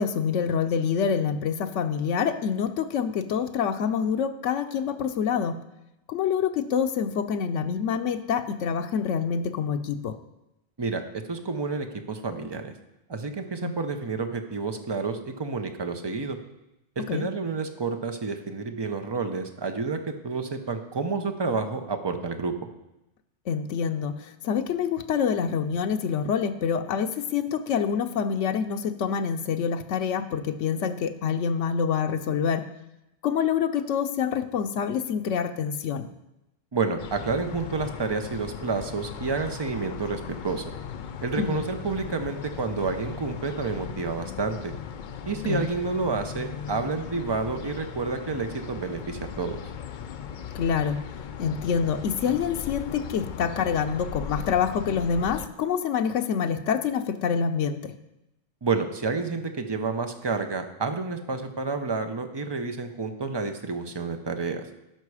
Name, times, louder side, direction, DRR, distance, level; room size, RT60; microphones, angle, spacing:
voice 1, 0.0-5.5 6.1-10.1 13.6-13.7 17.1-17.3 23.5-24.1 24.4-32.6 33.2-36.1 41.4-41.6 45.4-45.6 50.5-51.0 51.4-57.9, left 7 dB, 85° left, 8 dB, 1.0 m, -26 dB
voice 2, 11.3-12.7 13.1-16.4 17.0-22.5 36.7-40.6 41.2-44.7 45.3-49.6 58.6-64.7, right 4 dB, 25° right, 6 dB, 0.6 m, -29 dB
sound 1, 37.0-55.5, left 7 dB, 60° left, 0.5 m, -38 dB
12.0 x 5.4 x 4.8 m, 0.91 s
omnidirectional pair, 1.2 m